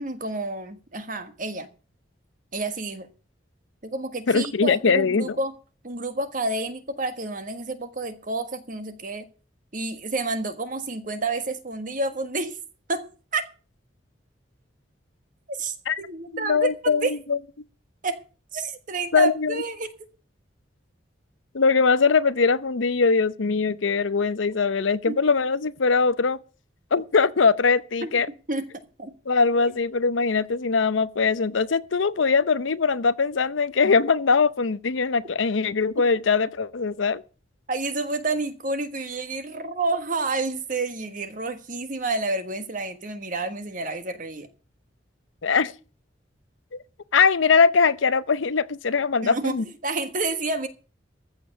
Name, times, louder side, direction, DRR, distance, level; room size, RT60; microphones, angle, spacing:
voice 1, 0.0-1.7 2.5-3.1 3.8-5.5 5.8-9.2 9.7-12.6 12.9-13.1 13.3-13.4 15.5-17.1 18.0-18.2 18.5-19.9 25.0-25.2 28.0-28.1 28.5-28.6 29.0-29.1 37.7-44.5 49.2-49.6 49.8-50.7, right 3 dB, 45° right, 1.5 m, -29 dB
voice 2, 4.3-5.4 15.9-16.0 16.3-17.4 19.1-19.6 21.5-26.4 26.9-28.3 29.3-37.2 45.4-45.7 46.7-46.8 47.1-49.6, left 5 dB, 85° left, 0.7 m, -21 dB
14.5 x 6.8 x 6.9 m
head